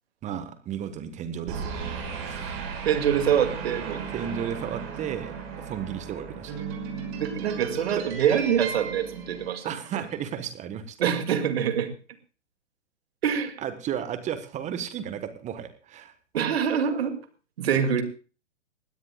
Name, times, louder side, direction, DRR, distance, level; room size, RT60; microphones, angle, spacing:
voice 1, 0.2-2.6 4.1-6.6 8.0-8.1 9.6-11.0 13.6-16.1, right 9 dB, 20° right, 11 dB, 1.3 m, -34 dB
sound 1, 1.5-10.0, right 6 dB, 35° right, 6.1 m, -36 dB
voice 2, 2.8-4.1 7.2-10.0 11.0-11.9 13.2-13.6 16.3-17.2 17.6-18.0, right 8 dB, 55° right, 7 dB, 2.4 m, -25 dB
21.0 x 16.5 x 2.3 m, 0.35 s
figure-of-eight pair, 115°, 36 cm